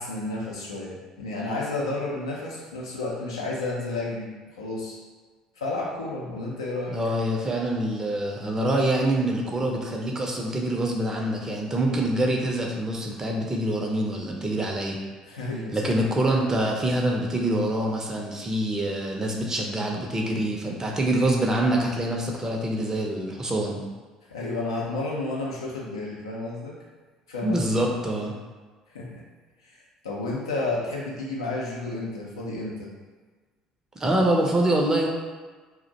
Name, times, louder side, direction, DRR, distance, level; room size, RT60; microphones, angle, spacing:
voice 1, 0.0-5.0 5.6-7.0 15.2-15.9 24.3-26.8 27.3-27.7 28.9-29.2 29.6-32.9, left 2 dB, 80° left, -4 dB, 0.5 m, -31 dB
voice 2, 6.9-15.0 15.7-23.8 27.4-28.3 34.0-35.1, right 1 dB, 20° right, 0 dB, 0.6 m, -25 dB
2.5 x 2.1 x 4.0 m, 1.4 s
figure-of-eight pair, 55°, 3 cm